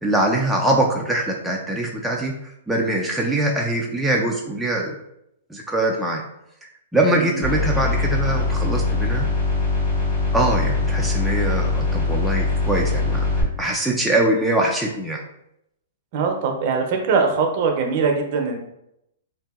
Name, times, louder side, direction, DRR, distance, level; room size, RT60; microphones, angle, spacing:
voice 1, 0.0-4.9 5.5-6.2 6.9-9.3 10.3-13.2 13.6-15.2, right 1 dB, ahead, -2 dB, 0.3 m, -22 dB
voice 2, 7.1-7.4 16.1-18.6, right 5 dB, 50° right, 3 dB, 0.6 m, -22 dB
sound 1, 7.4-13.4, left 3 dB, 40° left, 1.4 m, -22 dB
2.7 x 2.5 x 2.3 m, 0.80 s
hypercardioid pair, 135°, 0 cm